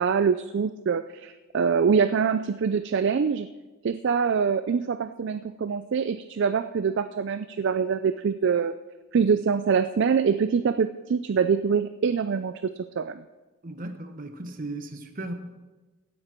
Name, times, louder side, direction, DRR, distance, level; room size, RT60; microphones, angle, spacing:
voice 1, 0.0-3.5 3.8-8.7 9.1-13.2, right 6 dB, 55° right, 11 dB, 0.4 m, -24 dB
voice 2, 13.6-15.3, right 2 dB, 40° right, 7 dB, 1.2 m, -36 dB
16.5 x 9.5 x 4.5 m, 1.2 s
head